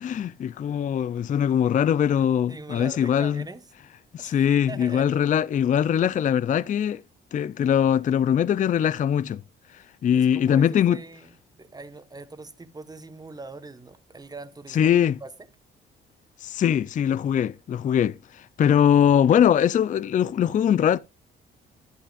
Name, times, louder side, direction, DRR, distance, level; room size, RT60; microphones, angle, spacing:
voice 1, 0.0-3.4 4.1-7.0 7.3-9.4 9.7-11.0 14.7-15.2 16.4-21.0, left 9 dB, 40° left, 0.4 m, -22 dB
voice 2, 2.5-3.6 4.2-5.1 10.1-15.3, right 3 dB, 20° right, 1.1 m, -42 dB
11.0 x 10.5 x 2.4 m
cardioid pair, 90°, 20 cm